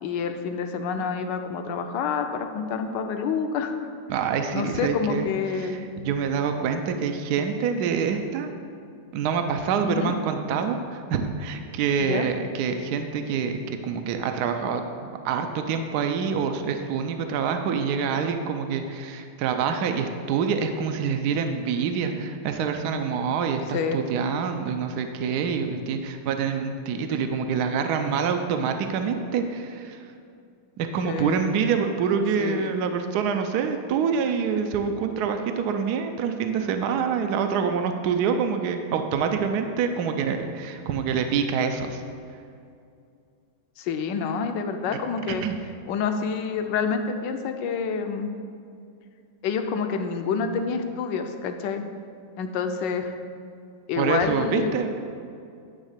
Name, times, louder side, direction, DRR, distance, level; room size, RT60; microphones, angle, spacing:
voice 1, 0.0-3.8 4.5-5.9 9.8-10.1 12.0-12.3 23.7-24.0 31.0-31.5 32.4-32.8 43.8-45.4 45.9-48.3 49.4-51.8 52.4-53.1 53.9-54.8, left 6 dB, 75° left, 6 dB, 1.3 m, -28 dB
voice 2, 4.1-8.5 9.1-30.0 30.8-42.0 45.4-45.6 54.0-54.9, right 6 dB, 70° right, 6 dB, 1.0 m, -26 dB
10.5 x 3.5 x 6.6 m, 2.4 s
omnidirectional pair, 2.1 m